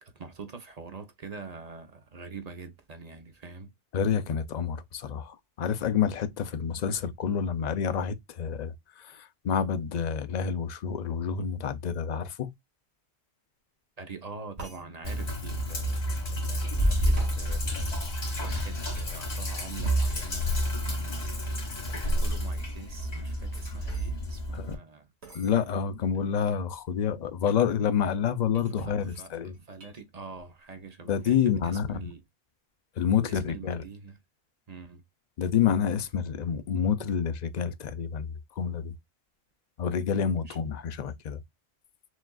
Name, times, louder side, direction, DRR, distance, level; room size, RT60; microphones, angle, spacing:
voice 1, 0.0-3.7 14.0-17.9 18.4-21.3 21.9-25.1 28.7-32.2 33.2-34.2 34.7-35.0 40.3-40.6, right 4 dB, 40° right, 0.8 m, -45 dB
voice 2, 3.9-8.7 9.1-12.5 24.5-24.8 25.3-29.5 31.1-32.1 33.0-33.8 35.4-38.3 38.6-38.9 39.8-41.4, left 7 dB, 50° left, 0.6 m, -28 dB
sound 1, 14.6-14.8 17.1-17.4 19.8-20.1 23.1-24.1 25.2-25.6 26.3-26.4 26.5-26.9 27.4-27.7 28.5-30.0 30.3-30.8 31.1-31.5, right 2 dB, 80° right, 2.2 m, -46 dB
Sink (filling or washing), 15.0-24.7, equal, 85° left, 2.2 m, -29 dB
6.1 x 2.4 x 2.3 m
omnidirectional pair, 1.1 m